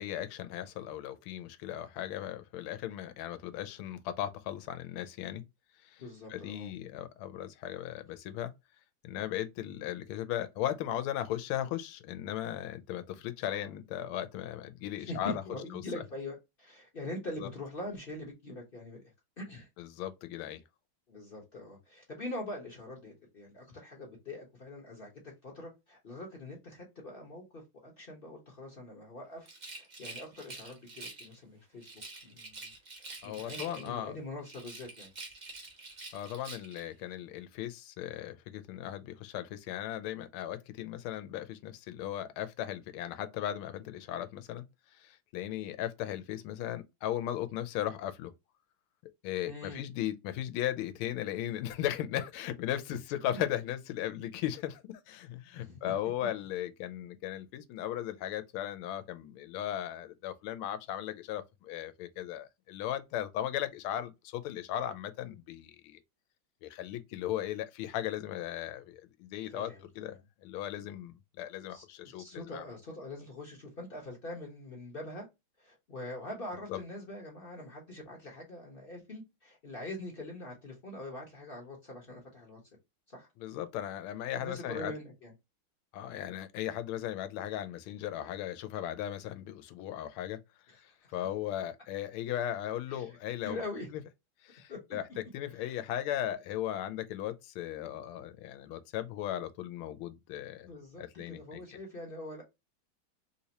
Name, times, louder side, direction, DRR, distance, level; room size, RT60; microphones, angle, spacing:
voice 1, 0.0-5.4 5.8-6.0 6.3-8.5 9.0-15.3 17.4-17.5 19.8-20.6 33.2-34.2 36.1-44.6 45.0-48.3 49.2-66.0 66.6-72.6 76.7-76.8 83.4-84.9 85.9-90.4 91.1-93.6 94.4-95.0 95.3-100.7 101.0-101.6, left 12 dB, 80° left, 1.4 m, -37 dB
voice 2, 6.0-6.7 13.4-13.8 15.0-19.0 19.4-19.7 21.1-31.9 32.2-32.7 33.0-35.1 49.4-49.8 55.5-55.9 56.2-56.3 69.5-70.2 71.7-75.3 75.6-82.6 83.1-83.3 84.3-85.3 90.7-91.1 92.9-93.2 93.4-93.9 94.7-94.8 95.5-95.8 100.6-102.4, left 1 dB, 40° left, 0.9 m, -43 dB
Rattle, 29.4-31.4 31.8-34.1 34.4-36.9, right 3 dB, 60° right, 0.4 m, -46 dB
3.4 x 2.9 x 2.8 m
omnidirectional pair, 2.3 m